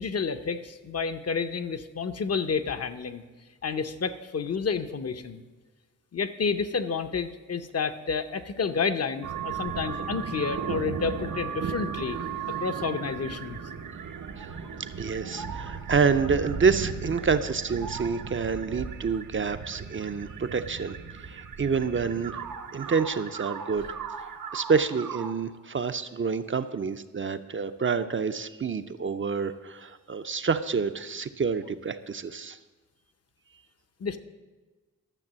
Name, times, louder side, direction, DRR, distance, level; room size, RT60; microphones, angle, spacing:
voice 1, 0.0-3.2 3.6-5.4 6.1-12.2 12.6-13.6 34.0-34.2, left 5 dB, 50° left, 9 dB, 0.7 m, -30 dB
sound 1, 9.2-25.3, right 6 dB, 90° right, 1.0 m, -36 dB
voice 2, 15.0-22.5 22.7-23.9 24.5-32.6, right 5 dB, 40° right, 10 dB, 0.5 m, -28 dB
12.0 x 7.4 x 7.4 m, 1.3 s
wide cardioid pair, 180°, 32 cm